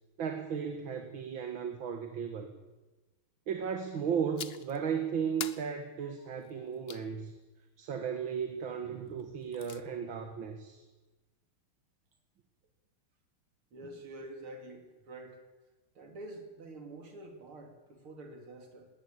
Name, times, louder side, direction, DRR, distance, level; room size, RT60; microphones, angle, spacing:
voice 1, 0.2-2.5 3.5-7.3 7.8-10.8, right 7 dB, 65° right, 7 dB, 2.4 m, -35 dB
sound 1, 4.4-4.8 5.4-7.1 9.2-9.8, left 7 dB, 50° left, 0.7 m, -44 dB
voice 2, 13.7-15.4 16.0-18.9, right 2 dB, 80° right, 5 dB, 3.6 m, -47 dB
20.5 x 17.5 x 8.8 m, 1.2 s
omnidirectional pair, 2.3 m